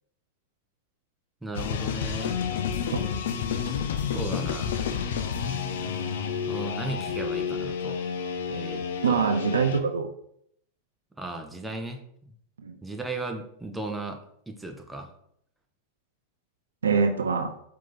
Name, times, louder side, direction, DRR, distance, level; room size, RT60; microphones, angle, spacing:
voice 1, 1.4-2.4 3.6-3.8 4.1-4.7 6.5-8.0 8.5-9.3 11.2-12.3 12.8-14.2 14.5-15.1, right 2 dB, 5° right, 3 dB, 0.6 m, -36 dB
sound 1, 1.5-9.8, left 7 dB, 60° left, 0.4 m, -30 dB
voice 2, 9.0-10.1 12.6-12.7 16.8-17.5, right 5 dB, 70° right, 7 dB, 0.4 m, -24 dB
4.6 x 2.8 x 3.9 m, 0.70 s
figure-of-eight pair, 90°, 0 cm